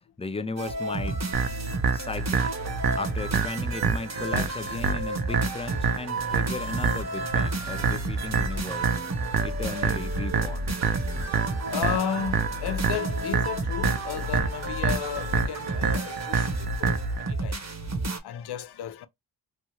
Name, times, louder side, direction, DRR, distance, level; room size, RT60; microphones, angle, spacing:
voice 1, 0.2-1.2 1.9-2.5 2.9-9.0 9.4-10.7, left 3 dB, 15° left, 0.3 m, -36 dB
sound 1, 0.6-18.2, right 2 dB, 40° right, 0.9 m, -31 dB
sound 2, 1.3-17.3, right 6 dB, 60° right, 0.6 m, -28 dB
voice 2, 11.7-17.8 18.2-19.1, left 9 dB, 75° left, 0.5 m, -33 dB
3.0 x 2.3 x 2.8 m
cardioid pair, 65°, 40 cm